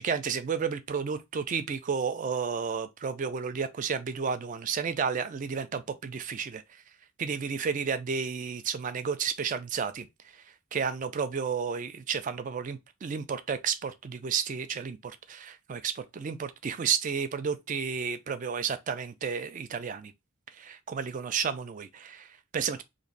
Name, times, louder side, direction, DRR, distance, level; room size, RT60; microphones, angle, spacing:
voice 1, 0.0-6.6 7.2-10.1 10.7-20.1 20.6-22.8, right 6 dB, 35° right, 0.3 m, -32 dB
3.0 x 2.5 x 3.8 m
head